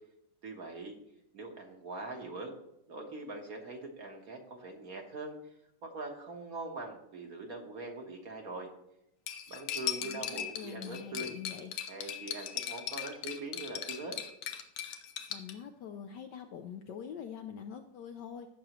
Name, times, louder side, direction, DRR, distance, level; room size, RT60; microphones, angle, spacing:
voice 1, 0.4-0.9 1.3-2.5 2.9-5.4 5.8-8.7 9.5-11.3 11.9-14.2, right 2 dB, 45° right, 2 dB, 1.5 m, -42 dB
Cutlery silverware, 9.3-15.5, left 9 dB, 90° left, 1.8 m, -39 dB
voice 2, 10.0-11.7 15.3-18.5, left 8 dB, 70° left, 6 dB, 1.0 m, -44 dB
15.5 x 6.3 x 3.0 m, 0.80 s
omnidirectional pair, 2.4 m